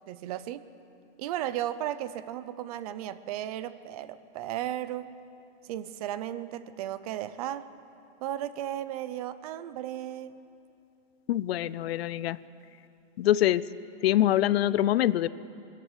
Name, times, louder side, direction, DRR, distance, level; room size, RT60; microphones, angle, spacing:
voice 1, 0.1-0.6 1.2-5.2 5.6-7.7 8.2-10.4, right 12 dB, 35° right, 15 dB, 0.6 m, -35 dB
voice 2, 11.3-12.4 13.2-13.6 14.0-15.3, left 13 dB, 60° left, 19 dB, 0.6 m, -24 dB
23.0 x 14.5 x 8.1 m, 2.7 s
hypercardioid pair, 155°, 35 cm